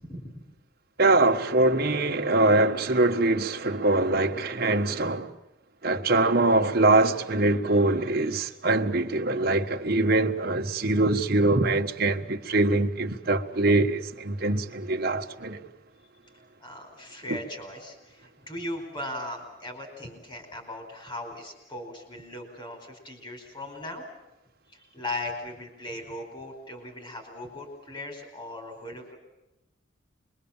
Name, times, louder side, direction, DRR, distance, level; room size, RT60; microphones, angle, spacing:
voice 1, 0.0-0.4 7.7-7.8 16.6-24.0 24.7-29.2, left 1 dB, 25° left, 4.7 m, -38 dB
voice 2, 1.0-5.3 5.8-15.6 17.3-17.4, right 2 dB, 50° right, 1.5 m, -23 dB
26.0 x 22.5 x 7.3 m
head